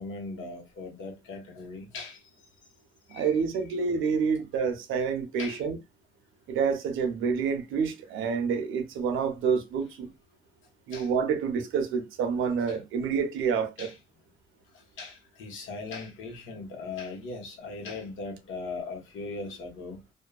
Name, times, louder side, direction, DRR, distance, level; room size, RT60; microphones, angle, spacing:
voice 1, 0.0-2.2 3.1-3.4 3.7-3.8 5.4-5.6 10.9-11.1 12.7-12.8 13.8-14.0 15.0-20.0, left 3 dB, 85° left, 1.1 m, -39 dB
voice 2, 3.1-5.8 6.5-10.1 10.9-13.9, right 6 dB, 85° right, 0.7 m, -28 dB
2.7 x 2.2 x 2.2 m
cardioid pair, 90°, 20 cm